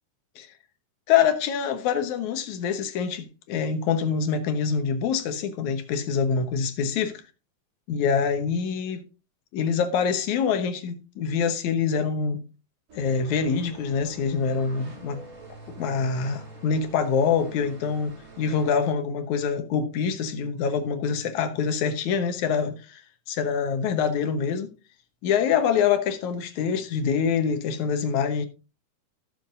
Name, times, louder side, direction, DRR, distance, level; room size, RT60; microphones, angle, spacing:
voice 1, 1.1-7.2 7.9-9.0 9.5-12.4 13.0-15.2 15.7-23.0 23.3-24.7 25.2-28.5, left 6 dB, 70° left, 2.4 m, -25 dB
sound 1, 12.9-18.7, right 2 dB, 80° right, 8.5 m, -45 dB
16.5 x 6.8 x 2.6 m
omnidirectional pair, 3.7 m